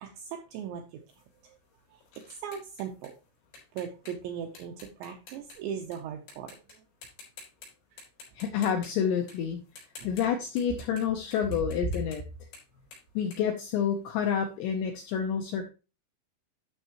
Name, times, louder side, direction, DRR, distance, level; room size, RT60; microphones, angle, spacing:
voice 1, 0.0-1.0 1.4-1.6 1.9-2.0 2.3-3.1 3.7-6.8 7.9-8.0 10.0-10.1, right 8 dB, 85° right, 4 dB, 2.6 m, -39 dB
sound 1, 1.1-6.0 6.3-6.7 7.0-7.7 8.0-14.3, left 4 dB, 60° left, 6.3 m, -51 dB
voice 2, 8.4-9.6 10.0-12.2 13.2-15.7, left 8 dB, 85° left, 4 dB, 2.5 m, -29 dB
12.0 x 6.4 x 3.0 m, 0.31 s
omnidirectional pair, 6.0 m